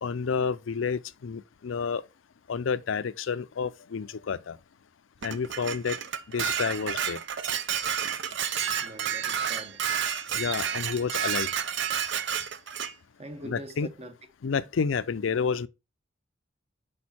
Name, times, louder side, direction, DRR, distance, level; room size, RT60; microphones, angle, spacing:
voice 1, 0.0-2.0 2.5-4.6 5.2-6.0 6.3-7.2 10.3-11.5 13.4-13.9 14.4-15.7, left 5 dB, 75° left, 0.5 m, -30 dB
Dishes pots and pans, 5.2-12.9, right 8 dB, 65° right, 0.6 m, -30 dB
voice 2, 8.0-8.4 8.8-9.9 13.2-14.1, right 1 dB, 35° right, 1.0 m, -44 dB
6.3 x 5.1 x 4.1 m
head